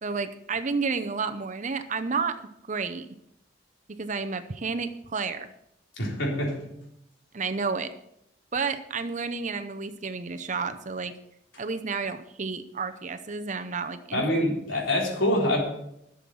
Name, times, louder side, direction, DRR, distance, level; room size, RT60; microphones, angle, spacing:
voice 1, 0.0-3.1 4.0-5.5 7.3-7.9 8.5-11.1 11.6-14.2, right 4 dB, 40° right, 9 dB, 0.7 m, -31 dB
voice 2, 6.0-6.6 14.1-15.6, left 1 dB, 75° left, -2 dB, 4.0 m, -25 dB
12.5 x 7.1 x 6.1 m, 0.79 s
head